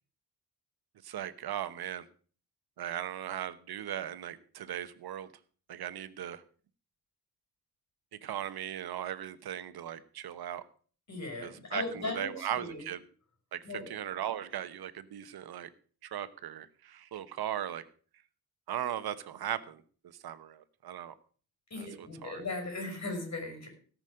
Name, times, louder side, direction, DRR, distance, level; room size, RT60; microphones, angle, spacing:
voice 1, 1.0-2.1 2.8-5.3 5.7-6.4 8.2-10.6 11.4-13.0 13.5-15.7 16.0-17.8 18.7-19.8 20.2-21.1 21.8-22.4, right 11 dB, 80° right, 13 dB, 1.1 m, -38 dB
voice 2, 11.1-12.8 13.6-13.9 21.7-23.7, left 2 dB, 45° left, 4 dB, 5.7 m, -38 dB
17.5 x 6.3 x 6.5 m, 0.43 s
wide cardioid pair, 150°, 37 cm